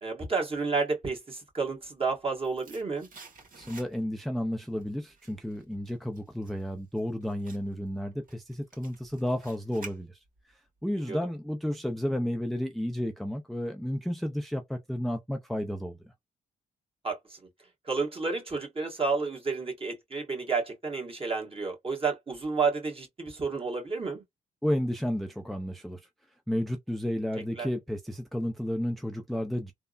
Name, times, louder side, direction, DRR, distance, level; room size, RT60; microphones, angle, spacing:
voice 1, 0.0-3.1 11.1-11.2 17.0-17.4 17.8-24.2 27.5-27.7, right 4 dB, 30° right, 1.6 m, -31 dB
sound 1, 2.2-4.3 4.6-10.5 10.8-10.9, right 4 dB, 45° right, 1.5 m, -52 dB
voice 2, 3.6-10.2 10.8-16.0 24.6-26.0 26.5-29.7, equal, ahead, 0.5 m, -32 dB
3.4 x 2.1 x 2.4 m
cardioid pair, 70°, 19 cm